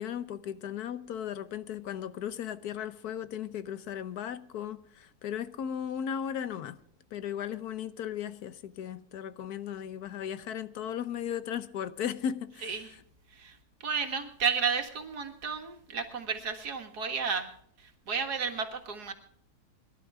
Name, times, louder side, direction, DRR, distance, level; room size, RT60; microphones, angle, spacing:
voice 1, 0.0-6.8 7.1-12.8, left 9 dB, 80° left, 1.4 m, -36 dB
voice 2, 13.3-17.5 17.8-19.1, right 6 dB, 85° right, 2.3 m, -32 dB
23.0 x 11.5 x 3.5 m
omnidirectional pair, 1.7 m